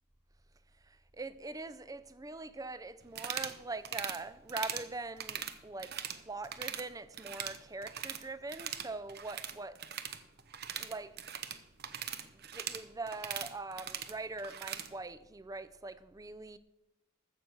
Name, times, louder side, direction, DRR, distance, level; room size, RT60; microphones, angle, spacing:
voice 1, 0.8-6.0 6.3-9.7 10.7-11.2 11.9-16.6, right 3 dB, 15° right, 0.5 m, -43 dB
sound 1, 3.1-3.6 3.8-4.2 4.5-4.9 5.2-6.2 6.4-6.8 7.1-8.2 8.5-14.9, right 9 dB, 50° right, 0.8 m, -40 dB
14.5 x 6.9 x 6.2 m
head